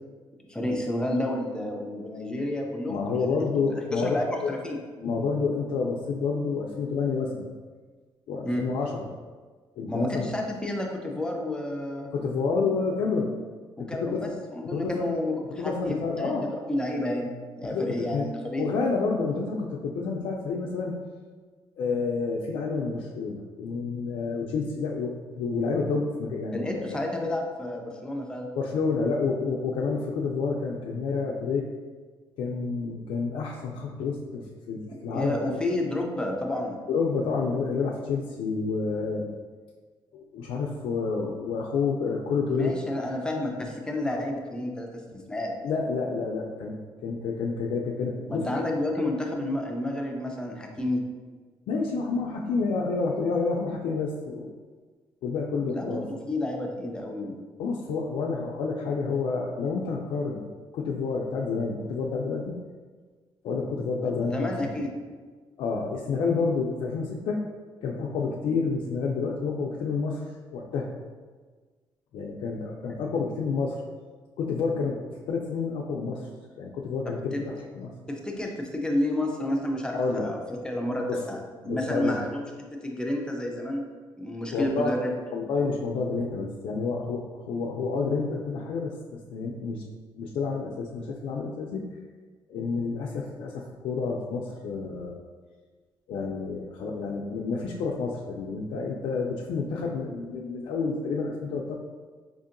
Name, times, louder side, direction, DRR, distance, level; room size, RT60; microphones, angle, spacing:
voice 1, 0.5-4.8 8.4-8.6 9.9-12.1 13.8-18.7 26.5-28.5 34.9-36.8 42.5-45.5 48.3-51.0 55.6-57.4 64.2-64.9 77.3-77.4 78.1-81.4 81.6-82.4 82.8-83.8 84.2-85.1, left 1 dB, 10° left, 1 dB, 0.4 m, -30 dB
voice 2, 2.9-4.6 5.0-7.5 8.3-9.1 9.8-10.3 12.1-13.3 13.8-14.3 14.6-15.1 15.6-16.5 17.6-18.3 18.6-21.0 21.8-27.0 28.5-31.6 32.4-35.6 36.9-39.3 40.1-42.8 45.6-46.8 47.0-48.5 51.7-54.5 55.2-56.1 57.6-60.4 60.7-62.5 63.4-64.9 65.6-67.4 67.8-70.2 70.5-70.9 72.1-73.8 74.4-75.0 75.3-76.3 76.6-77.9 79.9-80.3 81.1-81.3 81.6-82.3 84.5-85.0 85.3-89.8 90.2-91.8 92.5-95.1 96.1-101.7, left 4 dB, 80° left, -3 dB, 0.4 m, -29 dB
5.0 x 2.7 x 2.5 m, 1.4 s
cardioid pair, 140°, 9 cm